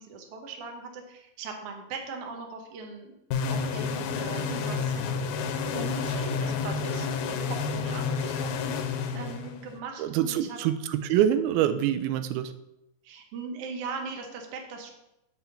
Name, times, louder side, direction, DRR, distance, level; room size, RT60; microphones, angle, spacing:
voice 1, 0.0-3.1 3.5-5.2 5.7-8.6 9.1-10.6 13.0-14.9, right 4 dB, 60° right, 2 dB, 1.6 m, -39 dB
sound 1, 3.3-9.8, left 5 dB, 75° left, 2.1 m, -30 dB
voice 2, 10.0-12.5, right 10 dB, 90° right, 11 dB, 2.5 m, -25 dB
7.7 x 4.4 x 7.0 m, 0.87 s
omnidirectional pair, 4.2 m